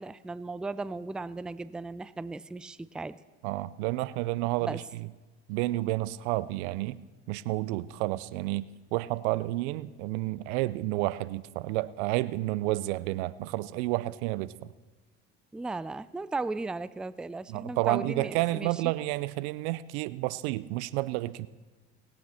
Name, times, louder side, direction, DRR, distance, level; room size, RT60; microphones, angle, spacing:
voice 1, 0.0-3.2 4.6-4.8 15.5-18.7, right 3 dB, 5° right, 16 dB, 0.3 m, -36 dB
voice 2, 3.4-5.1 5.5-7.0 7.3-14.7 17.5-21.5, right 18 dB, 80° right, 19 dB, 0.5 m, -30 dB
19.5 x 8.7 x 4.2 m, 1.3 s
hypercardioid pair, 70°, 33 cm